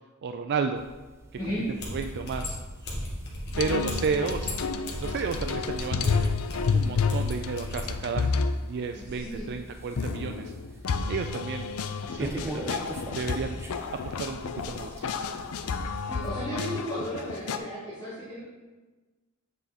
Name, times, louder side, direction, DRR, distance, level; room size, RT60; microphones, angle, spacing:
voice 1, 0.2-0.8 1.7-2.6 3.6-4.6 5.0-6.3 6.7-10.5 11.1-11.7 12.1-13.6 14.0-14.4 14.7-15.1, right 5 dB, 50° right, 6 dB, 0.3 m, -32 dB
sound 1, 0.8-16.3, right 1 dB, 10° right, 0.6 m, -44 dB
voice 2, 1.4-1.7 8.9-9.5 15.9-18.4, equal, 20° left, -13 dB, 2.6 m, -34 dB
sound 2, 1.8-7.9, left 1 dB, 50° left, 1.7 m, -35 dB
sound 3, 3.5-8.5 10.0-17.6, left 5 dB, 80° left, 0.5 m, -30 dB
8.2 x 4.9 x 4.1 m, 1.2 s
head